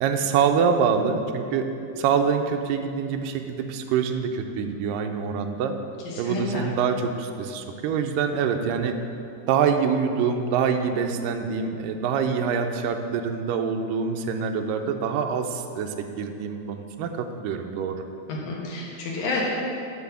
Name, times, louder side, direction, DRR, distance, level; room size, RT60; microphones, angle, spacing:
voice 1, 0.0-1.7 2.0-5.7 6.2-9.0 9.5-18.0, right 6 dB, 80° right, 5 dB, 2.1 m, -25 dB
voice 2, 6.0-6.6 18.3-19.4, left 3 dB, 65° left, -3 dB, 2.6 m, -30 dB
9.7 x 4.2 x 6.9 m, 2.5 s
omnidirectional pair, 4.1 m